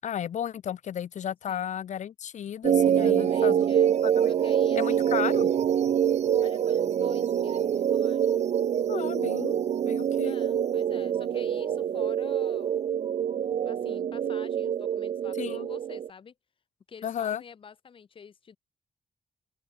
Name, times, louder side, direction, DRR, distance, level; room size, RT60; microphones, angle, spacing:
voice 1, 0.0-3.7 4.0-4.3 4.8-5.5 8.9-9.6 9.8-10.4 15.4-15.7 17.0-17.4, left 9 dB, 75° left, 7.4 m, -33 dB
sound 1, 2.6-16.1, right 9 dB, 65° right, 1.4 m, -25 dB
voice 2, 2.9-4.0 4.3-5.1 6.4-8.5 10.2-12.7 13.3-16.3 16.9-18.6, left 6 dB, 45° left, 4.9 m, -48 dB
open air
wide cardioid pair, 160°, 12 cm